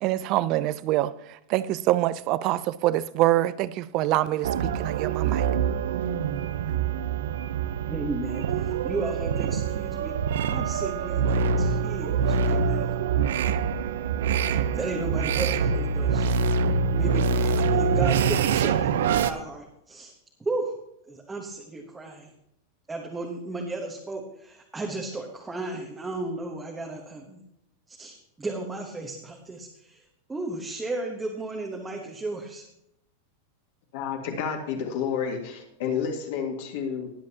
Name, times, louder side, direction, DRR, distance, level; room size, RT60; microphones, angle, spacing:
voice 1, 0.0-5.5, right 15 dB, 30° right, 0.5 m, -25 dB
sound 1, 4.4-19.3, right 6 dB, 80° right, 0.8 m, -25 dB
voice 2, 7.8-10.1 10.5-12.9 14.5-16.3 17.0-20.1 20.4-20.7 21.1-22.3 22.9-27.4 27.9-32.7, right 2 dB, 5° right, 1.1 m, -34 dB
voice 3, 33.9-37.1, left 7 dB, 55° left, 2.0 m, -30 dB
20.0 x 7.5 x 2.9 m
supercardioid pair, 175°, 0 cm